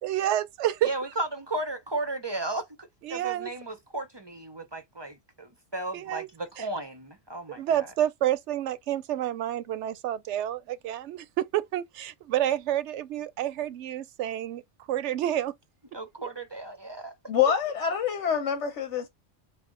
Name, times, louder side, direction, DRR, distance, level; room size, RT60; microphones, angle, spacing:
voice 1, 0.0-0.9 3.0-3.5 5.9-6.3 6.6-6.7 7.6-14.6 14.9-15.5, right 12 dB, 85° right, 0.9 m, -29 dB
voice 2, 0.8-7.9 15.9-17.1, right 2 dB, 30° right, 0.5 m, -35 dB
voice 3, 17.3-19.1, left 8 dB, 90° left, 1.1 m, -26 dB
5.0 x 2.0 x 3.7 m
omnidirectional pair, 1.2 m